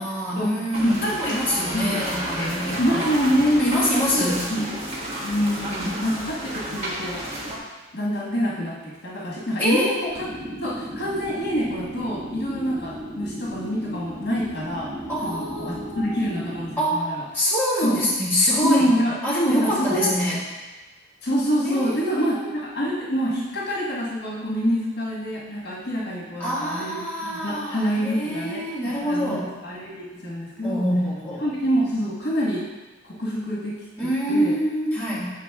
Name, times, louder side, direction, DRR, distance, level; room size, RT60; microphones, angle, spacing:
voice 1, 0.0-2.8 3.6-4.5 9.6-10.0 15.1-16.5 16.8-18.9 19.2-20.4 21.7-22.5 26.4-29.5 30.6-31.4 34.0-35.2, equal, 10° left, -9 dB, 1.8 m, -25 dB
sound 1, 0.7-7.6, right 1 dB, 30° right, 1.2 m, -31 dB
voice 2, 0.8-2.0 2.8-3.8 4.1-4.6 5.2-7.3 7.9-10.1 10.6-14.9 15.2-17.2 17.8-18.0 18.6-19.2 19.4-20.1 21.2-28.6 28.9-30.8 31.4-32.6 33.0-33.7 34.3-34.5, equal, 55° left, -5 dB, 1.4 m, -26 dB
sound 2, 10.1-16.7, right 1 dB, 10° right, 2.2 m, -36 dB
7.2 x 5.1 x 3.5 m, 1.2 s
head